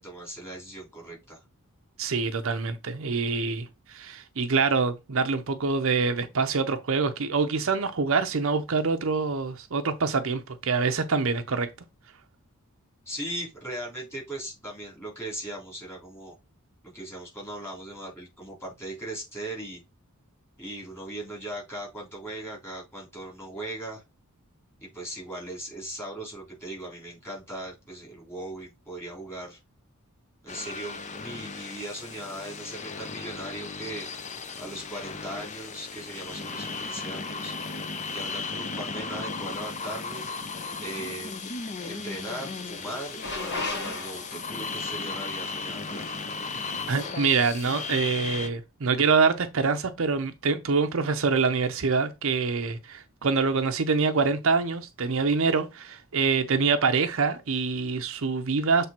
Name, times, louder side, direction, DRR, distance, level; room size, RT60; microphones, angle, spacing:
voice 1, 0.0-1.4 13.1-16.3 16.8-19.8 20.6-24.0 24.8-29.6 30.4-41.4 41.8-46.2, right 1 dB, 10° left, 3.6 m, -39 dB
voice 2, 2.0-11.7 46.9-58.9, right 4 dB, 60° right, 0.6 m, -25 dB
sound 1, 30.5-48.5, left 4 dB, 30° left, 0.7 m, -36 dB
sound 2, 43.2-44.6 47.0-47.3, left 3 dB, 50° left, 1.7 m, -34 dB
7.3 x 3.3 x 4.4 m
head